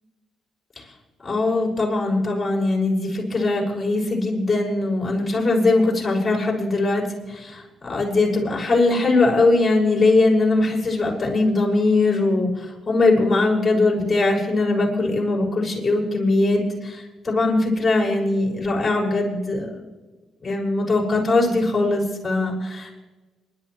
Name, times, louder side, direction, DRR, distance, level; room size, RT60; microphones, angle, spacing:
voice 1, 1.2-19.7 20.4-22.9, left 2 dB, 20° left, -2 dB, 6.0 m, -21 dB
28.0 x 12.0 x 3.2 m, 1.2 s
cardioid pair, 90°, 0 cm